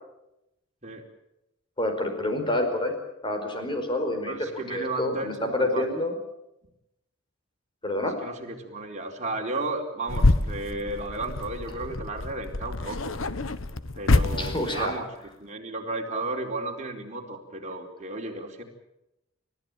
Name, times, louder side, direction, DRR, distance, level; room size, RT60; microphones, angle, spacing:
voice 1, 1.8-2.9 3.2-6.2 7.8-8.2 14.4-15.0, left 1 dB, 25° left, 5 dB, 4.8 m, -28 dB
voice 2, 4.3-5.9 8.2-13.1 14.0-15.1 15.4-18.6, right 2 dB, 35° right, 1 dB, 4.4 m, -33 dB
sound 1, 10.1-15.0, left 2 dB, 75° left, 1.3 m, -26 dB
30.0 x 15.0 x 9.2 m, 0.88 s
head